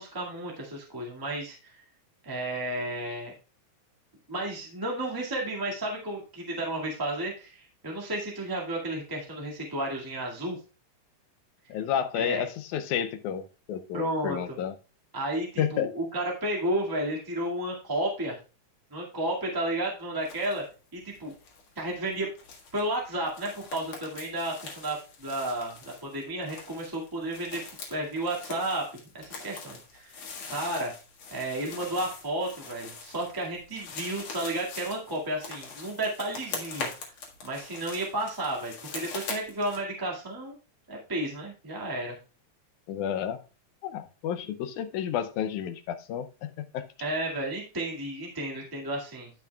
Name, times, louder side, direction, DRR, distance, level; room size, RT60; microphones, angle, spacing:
voice 1, 0.0-1.7 2.2-3.3 4.3-10.6 12.1-12.4 13.9-14.6 15.1-18.3 18.9-20.6 20.9-21.3 21.7-22.3 22.7-27.6 27.9-28.9 29.1-30.9 31.3-37.1 37.4-40.6 40.9-42.1 47.0-49.3, right 1 dB, 10° right, 1.4 m, -32 dB
voice 2, 11.7-14.8 15.6-15.9 42.9-43.4 43.8-46.9, left 9 dB, 80° left, 2.0 m, -31 dB
sound 1, 20.2-20.6 20.9-39.8, left 4 dB, 60° left, 2.8 m, -42 dB
14.5 x 5.9 x 2.3 m
omnidirectional pair, 3.5 m